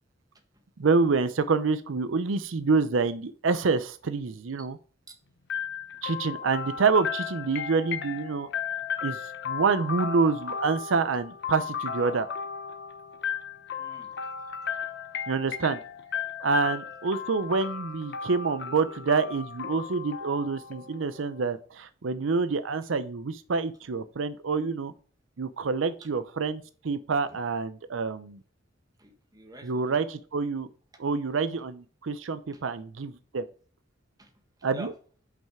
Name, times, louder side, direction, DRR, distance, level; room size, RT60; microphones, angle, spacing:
voice 1, 0.8-4.8 6.0-8.5 9.0-12.3 15.3-15.8 16.4-24.9 25.4-28.4 29.6-30.7 31.0-33.5 34.6-34.9, right 4 dB, 80° right, 12 dB, 0.6 m, -27 dB
Hamborger Veermaster, 5.5-21.3, left 7 dB, 65° left, 0.8 m, -35 dB
voice 2, 13.8-14.1 27.2-27.4 29.0-30.0 32.5-32.6 34.2-34.3 34.7-34.9, right 1 dB, 20° right, 4 dB, 1.5 m, -46 dB
6.1 x 5.6 x 4.9 m, 0.41 s
head